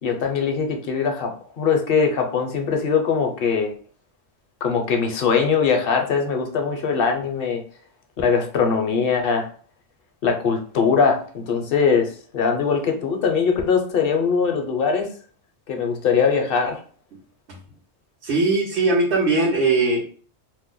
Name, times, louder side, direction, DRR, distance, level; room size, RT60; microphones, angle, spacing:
voice 1, 0.0-3.7 4.6-7.6 8.2-9.5 10.2-15.1 15.7-16.8, left 5 dB, 60° left, 4 dB, 0.8 m, -21 dB
voice 2, 18.2-20.0, right 3 dB, 75° right, -4 dB, 1.0 m, -19 dB
2.6 x 2.1 x 3.7 m, 0.44 s
omnidirectional pair, 1.1 m